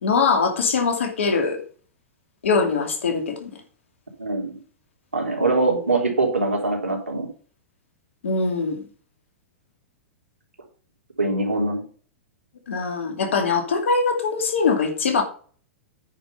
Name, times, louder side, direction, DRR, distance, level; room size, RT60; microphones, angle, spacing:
voice 1, 0.0-1.6 2.4-3.5 5.7-5.8 8.2-8.8 12.7-15.2, left 4 dB, 70° left, 4 dB, 2.5 m, -22 dB
voice 2, 4.2-4.5 5.1-7.3 11.2-11.8, right 2 dB, 85° right, 1 dB, 3.3 m, -23 dB
9.3 x 5.4 x 5.6 m, 0.43 s
figure-of-eight pair, 100°, 7 cm